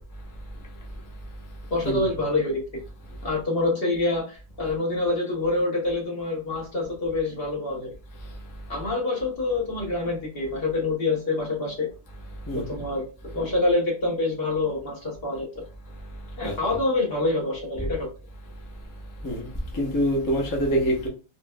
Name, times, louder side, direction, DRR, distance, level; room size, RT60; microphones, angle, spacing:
voice 1, 1.7-2.6 3.2-8.0 8.7-11.9 12.5-13.0 13.3-15.6 16.4-18.1, left 2 dB, 45° left, 0.9 m, -26 dB
voice 2, 19.7-21.1, equal, 20° left, 0.5 m, -25 dB
4.3 x 2.1 x 2.2 m
omnidirectional pair, 1.6 m